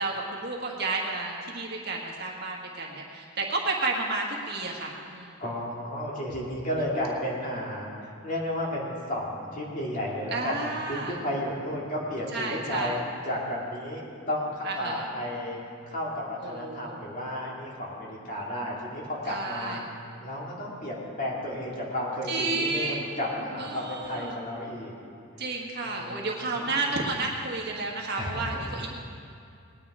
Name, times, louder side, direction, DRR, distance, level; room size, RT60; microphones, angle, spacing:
voice 1, 0.0-5.4 10.3-11.2 12.3-13.0 14.6-15.0 16.4-17.0 19.3-19.8 22.3-23.0 23.6-24.4 25.4-28.9, right 3 dB, 45° right, -1 dB, 1.6 m, -31 dB
voice 2, 5.4-15.6 15.9-19.8 20.2-24.9 25.8-27.0 28.2-28.6, left 1 dB, 35° left, -4 dB, 2.5 m, -33 dB
19.5 x 9.7 x 4.9 m, 2.4 s
head